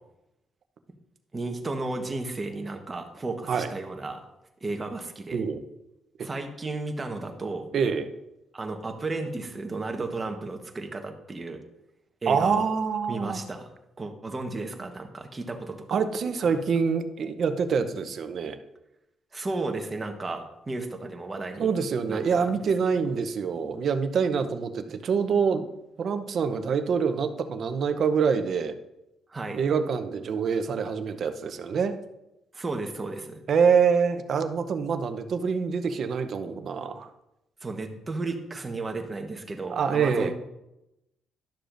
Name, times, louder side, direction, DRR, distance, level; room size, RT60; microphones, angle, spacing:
voice 1, 1.3-4.2 4.6-5.4 6.2-7.7 8.5-11.6 12.2-12.7 13.1-13.7 14.0-15.8 16.4-16.5 19.3-21.7 22.1-22.5 29.3-29.6 32.5-33.4 37.6-40.3, right 3 dB, 25° right, 4 dB, 1.2 m, -33 dB
voice 2, 7.7-8.1 12.3-13.4 15.9-18.6 21.6-25.7 26.0-28.8 29.5-32.0 33.5-37.1 39.7-40.3, right 6 dB, 60° right, 9 dB, 0.7 m, -25 dB
11.5 x 6.7 x 2.6 m, 0.89 s
cardioid pair, 90°, 0 cm